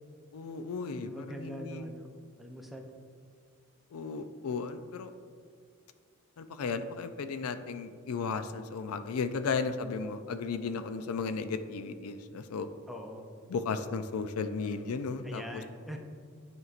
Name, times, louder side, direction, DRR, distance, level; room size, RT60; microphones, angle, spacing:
voice 1, 0.3-1.9 3.9-5.1 6.4-12.7 13.5-15.6, left 4 dB, 90° left, 10 dB, 0.4 m, -35 dB
voice 2, 1.0-2.1 2.4-2.9 12.9-13.3 15.2-16.0, equal, ahead, 2 dB, 0.5 m, -43 dB
9.4 x 4.5 x 2.5 m, 2.1 s
head